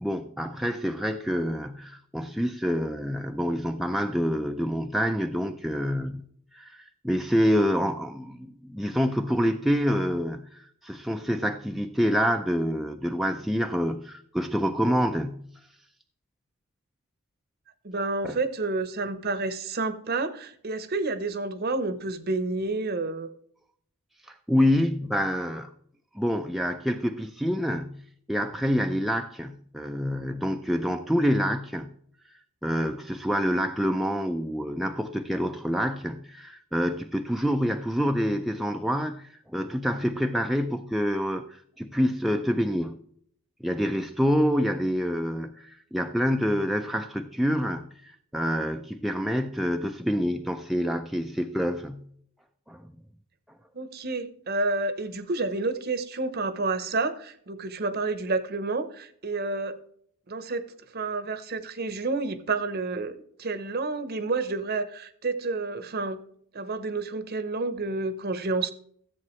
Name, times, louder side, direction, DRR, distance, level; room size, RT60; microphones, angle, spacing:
voice 1, 0.0-6.2 6.5-15.5 18.2-18.4 24.3-25.7 26.1-28.0 28.3-31.9 32.6-42.9 43.6-52.1 52.7-52.9, equal, ahead, 0.3 m, -27 dB
voice 2, 17.8-23.3 53.7-59.8 60.3-60.6 60.9-66.2 66.5-68.7, right 3 dB, 45° right, 0.8 m, -29 dB
13.5 x 7.7 x 3.1 m
head